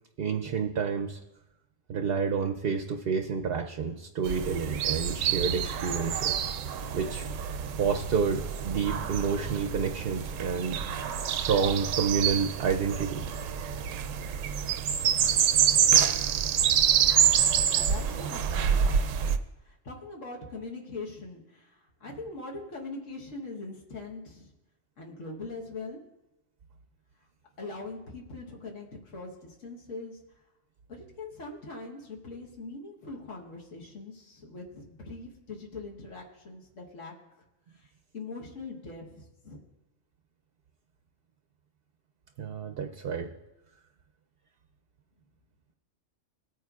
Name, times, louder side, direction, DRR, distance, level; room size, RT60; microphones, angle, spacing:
voice 1, 0.2-1.2 1.9-6.4 6.9-7.5 7.8-13.2 42.4-43.3, right 6 dB, 60° right, 5 dB, 0.7 m, -29 dB
sound 1, 4.2-19.4, right 8 dB, 85° right, 1.0 m, -27 dB
voice 2, 17.7-24.5 25.0-26.0 27.6-30.2 30.9-37.2 37.7-39.6, left 3 dB, 75° left, -1 dB, 1.6 m, -42 dB
18.5 x 9.3 x 2.4 m, 0.98 s
omnidirectional pair, 1.3 m